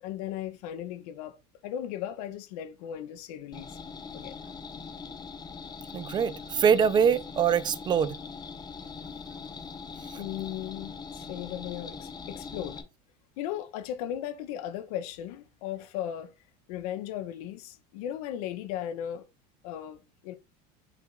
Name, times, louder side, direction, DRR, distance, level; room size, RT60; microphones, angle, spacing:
voice 1, 0.0-1.4 1.6-3.8 4.1-4.4 10.2-12.8 13.4-16.3 16.7-19.2 19.6-20.3, left 11 dB, 75° left, 0.7 m, -36 dB
sound 1, 3.5-12.8, left 5 dB, 20° left, 0.8 m, -42 dB
voice 2, 5.9-8.2 10.1-10.2, right 7 dB, 25° right, 0.4 m, -24 dB
5.6 x 2.5 x 3.7 m
supercardioid pair, 120°, 19 cm